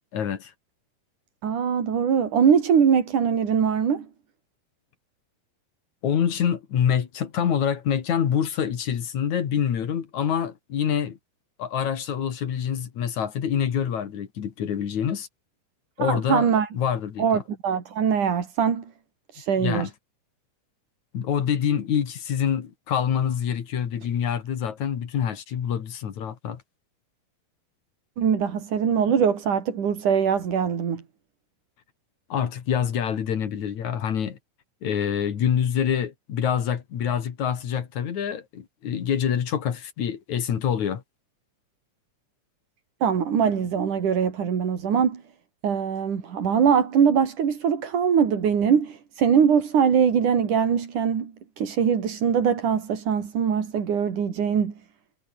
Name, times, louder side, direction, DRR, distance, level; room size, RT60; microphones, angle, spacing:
voice 1, 0.1-0.5 6.0-11.2 11.6-15.3 16.0-16.5 16.7-17.4 19.6-19.9 21.1-26.6 32.3-34.4 34.8-41.0, left 8 dB, 65° left, 3.4 m, -26 dB
voice 2, 1.4-4.1 16.0-16.7 17.2-18.8 19.3-19.9 28.2-31.0 43.0-45.2 45.6-54.7, right 7 dB, 70° right, 4.5 m, -22 dB
omnidirectional pair, 3.7 m